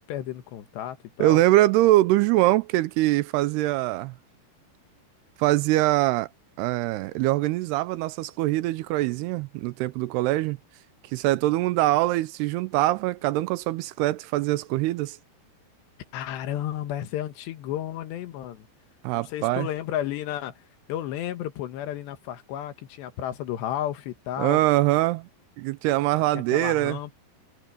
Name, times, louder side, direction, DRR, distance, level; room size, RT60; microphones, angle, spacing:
voice 1, 0.0-1.4 16.1-18.7 19.1-20.5 20.9-24.6 26.3-27.1, left 11 dB, 90° left, 3.5 m, -32 dB
voice 2, 1.2-4.1 5.4-6.3 6.6-10.6 11.1-15.2 19.0-19.7 24.4-25.3 25.6-27.0, right 17 dB, 85° right, 2.5 m, -23 dB
omnidirectional pair, 4.9 m